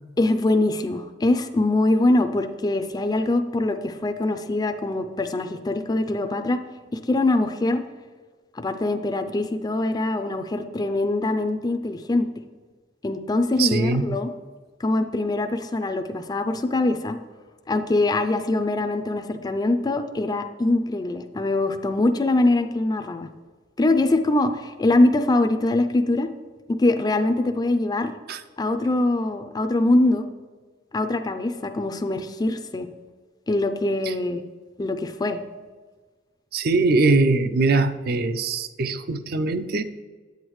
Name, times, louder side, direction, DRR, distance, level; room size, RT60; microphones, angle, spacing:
voice 1, 0.2-6.6 7.1-7.8 8.5-12.3 13.0-14.3 14.8-17.2 17.7-23.3 23.8-26.3 26.7-28.1 28.6-30.3 30.9-32.9 33.5-34.4 34.8-35.4, left 2 dB, 20° left, 8 dB, 0.4 m, -23 dB
voice 2, 13.6-14.2 28.3-28.4 34.0-34.1 36.5-39.8, right 3 dB, 55° right, 11 dB, 0.4 m, -22 dB
8.5 x 8.0 x 3.1 m, 1.4 s
head